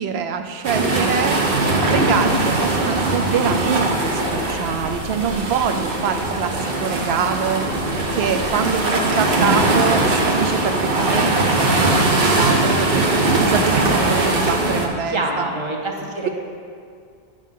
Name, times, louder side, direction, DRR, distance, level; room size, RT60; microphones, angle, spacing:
voice 1, 0.0-1.4 1.8-7.6 8.1-15.5, right 7 dB, 85° right, 7 dB, 0.8 m, -25 dB
sound 1, 0.6-14.9, right 2 dB, 65° right, 1.1 m, -20 dB
voice 2, 15.1-16.3, right 2 dB, 30° right, 0 dB, 0.9 m, -25 dB
9.2 x 7.0 x 3.7 m, 2.2 s
omnidirectional pair, 1.0 m